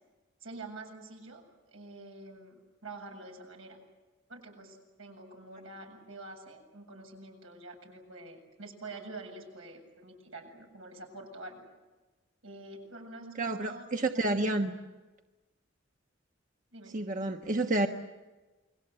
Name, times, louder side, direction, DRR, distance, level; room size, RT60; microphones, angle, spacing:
voice 1, 0.4-1.4 1.7-3.8 4.3-11.7 12.4-13.9 14.1-14.3 16.7-17.0, right 2 dB, 85° right, 2 dB, 7.6 m, -47 dB
voice 2, 13.4-14.7 16.9-17.9, right 2 dB, 40° right, 4 dB, 1.2 m, -29 dB
29.5 x 22.5 x 7.9 m, 1.2 s
head